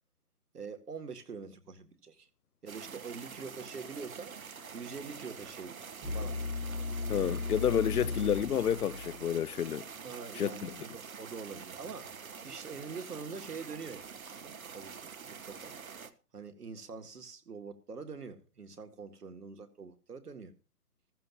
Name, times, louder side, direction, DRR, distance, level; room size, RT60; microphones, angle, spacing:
voice 1, 0.5-2.3 2.6-4.4 4.7-6.4 10.0-12.1 12.4-15.8 16.3-20.5, right 5 dB, 75° right, 2.1 m, -45 dB
sound 1, 2.7-16.1, right 6 dB, 60° right, 1.2 m, -46 dB
sound 2, 6.0-9.9, left 3 dB, 5° right, 1.0 m, -36 dB
voice 2, 7.1-9.9 10.4-10.7, left 9 dB, 70° left, 0.6 m, -30 dB
15.5 x 14.5 x 2.6 m
hypercardioid pair, 170°, 47 cm